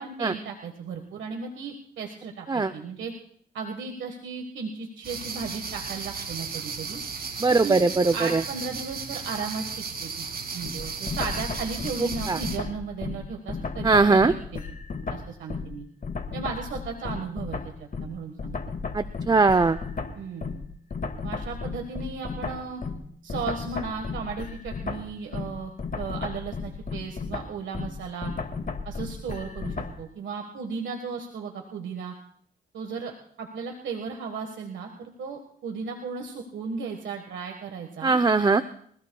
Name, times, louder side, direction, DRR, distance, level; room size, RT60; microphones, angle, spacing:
voice 1, 0.0-3.1 3.5-7.0 7.6-10.2 10.5-14.6 15.1-15.8 16.3-17.7 18.0-18.5 20.1-20.5 21.2-22.8 23.2-28.3 28.8-32.1 32.7-38.2, right 5 dB, 85° right, 3 dB, 1.5 m, -35 dB
sound 1, 5.0-12.6, right 5 dB, 55° right, 2.3 m, -35 dB
voice 2, 7.4-8.4 12.0-12.4 13.8-14.3 18.9-19.8 38.0-38.6, right 3 dB, 20° right, 12 dB, 0.6 m, -20 dB
sound 2, 10.6-15.8 16.0-30.0, left 4 dB, 50° left, 1.9 m, -34 dB
25.0 x 16.0 x 2.3 m, 0.62 s
cardioid pair, 65°, 19 cm